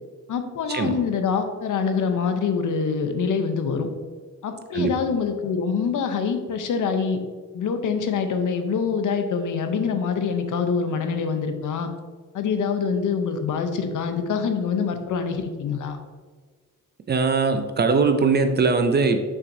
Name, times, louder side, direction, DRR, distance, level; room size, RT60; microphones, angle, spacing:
voice 1, 0.3-3.9 4.4-7.2 7.5-11.9 12.3-16.0, left 5 dB, 65° left, 7 dB, 0.7 m, -25 dB
voice 2, 17.1-19.2, right 4 dB, 30° right, 7 dB, 0.4 m, -20 dB
6.3 x 5.9 x 2.7 m, 1.5 s
wide cardioid pair, 170°, 33 cm